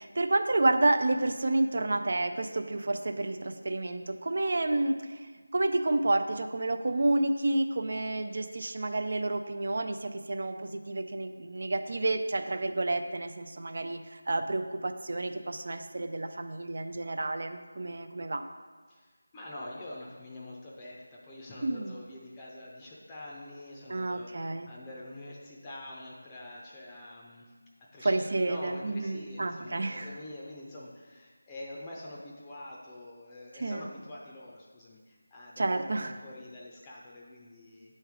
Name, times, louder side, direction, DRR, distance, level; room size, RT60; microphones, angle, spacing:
voice 1, 0.0-18.4 21.6-21.9 23.9-24.7 28.0-30.1 33.6-33.9 35.6-36.1, right 2 dB, 55° right, 7 dB, 0.5 m, -30 dB
voice 2, 18.9-27.5 27.9-38.0, left 1 dB, 15° left, -4 dB, 0.6 m, -45 dB
8.8 x 3.2 x 4.8 m, 1.4 s
figure-of-eight pair, 170°, 0 cm